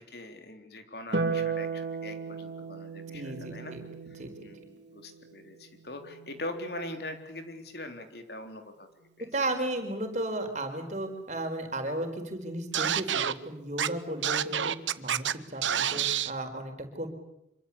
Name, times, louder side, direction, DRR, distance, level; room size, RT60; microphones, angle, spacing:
voice 1, 0.0-3.8 4.1-8.9 9.2-9.3 15.7-16.1, left 1 dB, 60° left, 6 dB, 3.7 m, -42 dB
Harp, 1.1-7.6 9.3-10.3, right 4 dB, 70° right, 3.2 m, -37 dB
voice 2, 3.1-3.8 4.2-4.3 9.2-17.1, right 1 dB, 40° right, 5 dB, 4.7 m, -34 dB
Scratching (performance technique), 12.7-13.3 13.8-13.9 14.2-15.3 15.6-16.3, right 9 dB, 90° right, 1.1 m, -27 dB
26.5 x 24.5 x 8.6 m, 0.81 s
head